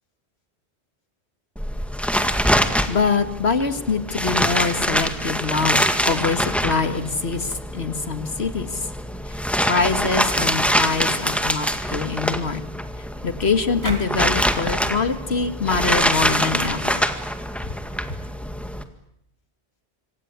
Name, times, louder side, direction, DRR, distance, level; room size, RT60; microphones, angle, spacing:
sound 1, 1.6-18.8, equal, ahead, 1.9 m, -24 dB
voice 1, 2.9-8.8 9.7-12.6 13.2-17.0, left 4 dB, 70° left, 9 dB, 2.2 m, -24 dB
sound 2, 10.3-10.7 11.0-11.4 13.8-14.3, right 2 dB, 25° right, 2.5 m, -34 dB
26.5 x 25.5 x 8.2 m, 0.75 s
omnidirectional pair, 1.1 m